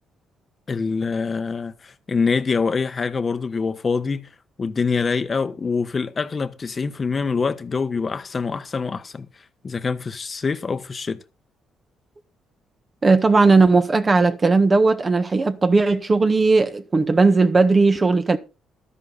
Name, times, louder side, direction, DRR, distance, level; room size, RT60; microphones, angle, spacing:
voice 1, 0.7-4.3 4.6-9.3 9.6-11.2, left 5 dB, 35° left, 1.2 m, -25 dB
voice 2, 13.0-18.4, right 3 dB, 30° right, 1.5 m, -17 dB
13.0 x 10.5 x 4.2 m
cardioid pair, 90°, 0 cm